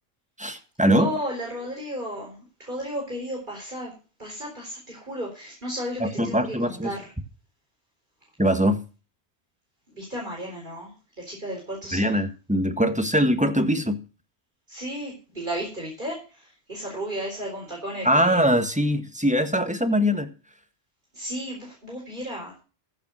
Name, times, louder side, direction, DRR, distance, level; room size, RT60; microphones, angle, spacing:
voice 1, 0.4-1.1 6.0-6.9 8.4-8.8 11.9-14.0 18.0-20.3, equal, 5° right, 1.5 m, -22 dB
voice 2, 1.0-3.9 4.2-7.1 9.9-12.2 14.7-18.5 21.1-22.6, equal, 45° right, 4.5 m, -34 dB
15.0 x 7.0 x 6.3 m
omnidirectional pair, 1.2 m